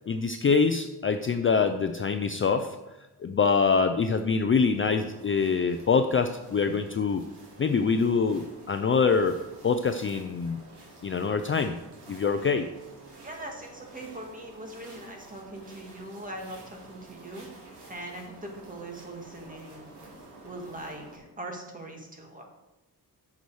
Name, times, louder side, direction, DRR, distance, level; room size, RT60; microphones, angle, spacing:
voice 1, 0.1-2.8 3.2-7.2 7.6-9.4 9.6-10.6 11.0-11.8 12.1-12.7, left 5 dB, 30° left, 7 dB, 0.4 m, -25 dB
sound 1, 4.7-21.2, right 2 dB, 90° right, 3.4 m, -50 dB
voice 2, 13.2-17.6 17.9-19.9 20.4-22.4, right 1 dB, 20° right, 1 dB, 1.8 m, -41 dB
10.5 x 7.0 x 4.7 m, 1.0 s
wide cardioid pair, 145°, 40 cm